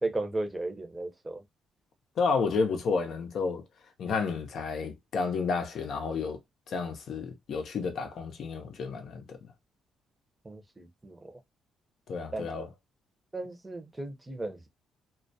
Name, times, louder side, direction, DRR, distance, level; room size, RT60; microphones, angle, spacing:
voice 1, 0.0-1.4 10.4-11.4 12.3-12.6 13.3-14.7, right 2 dB, 15° right, 0.6 m, -35 dB
voice 2, 2.2-3.6 4.0-6.4 6.7-9.4 12.1-12.7, left 5 dB, 65° left, 0.6 m, -31 dB
2.2 x 2.1 x 2.6 m
cardioid pair, 90°, 0 cm